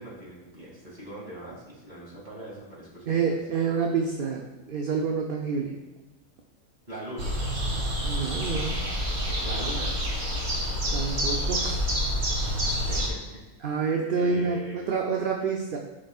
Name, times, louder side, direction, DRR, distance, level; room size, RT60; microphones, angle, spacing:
voice 1, 0.0-3.3 6.9-7.4 9.4-10.0 12.4-13.3 14.1-15.0, equal, 35° right, -5 dB, 2.5 m, -41 dB
voice 2, 3.1-5.8 8.0-8.8 10.9-11.8 13.6-15.8, right 5 dB, 50° right, 1 dB, 0.7 m, -28 dB
sound 1, 7.2-13.1, equal, 70° right, 1.7 m, -28 dB
11.5 x 4.9 x 2.4 m, 1.1 s
omnidirectional pair, 1.3 m